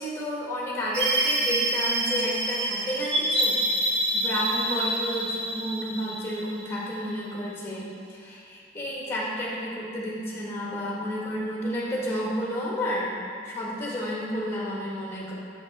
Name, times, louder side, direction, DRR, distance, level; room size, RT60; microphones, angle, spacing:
voice 1, 0.0-3.6 3.8-13.1 13.4-15.3, equal, 15° left, -5 dB, 1.2 m, -31 dB
sound 1, 0.9-7.2, right 1 dB, 70° right, 0.9 m, -27 dB
6.6 x 5.0 x 4.0 m, 2.4 s
head